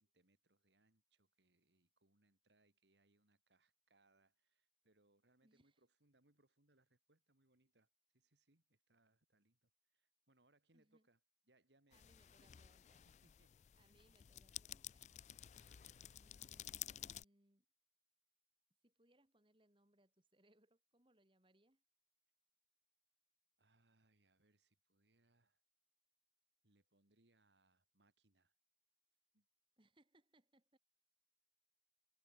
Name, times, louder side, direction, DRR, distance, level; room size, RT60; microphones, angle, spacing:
voice 1, 0.0-11.2 11.5-12.1 12.4-12.5 12.9-14.0 15.4-16.7 23.6-25.6 26.6-28.5 29.3-29.5, right 2 dB, 85° right, 3.0 m, -78 dB
voice 2, 5.4-5.8 10.7-11.1 11.9-13.1 13.7-15.2 16.2-17.6 18.8-21.8 29.8-30.8, right 1 dB, 30° right, 2.9 m, -75 dB
sound 1, 11.9-17.2, left 12 dB, 40° left, 0.3 m, -53 dB
head